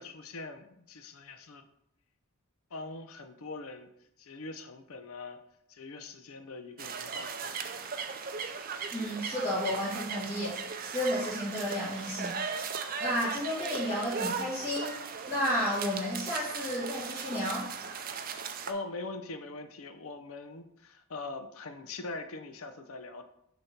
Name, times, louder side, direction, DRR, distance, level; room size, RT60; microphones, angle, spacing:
voice 1, 0.0-1.6 2.7-3.9 4.2-5.4 5.7-7.9 18.7-23.2, left 3 dB, 70° left, 8 dB, 0.6 m, -42 dB
sound 1, 6.8-18.7, right 6 dB, 40° right, 0.4 m, -38 dB
voice 2, 8.9-10.6 10.9-12.4 13.0-17.7, equal, 20° left, -11 dB, 1.8 m, -32 dB
6.5 x 2.9 x 5.8 m, 0.76 s
head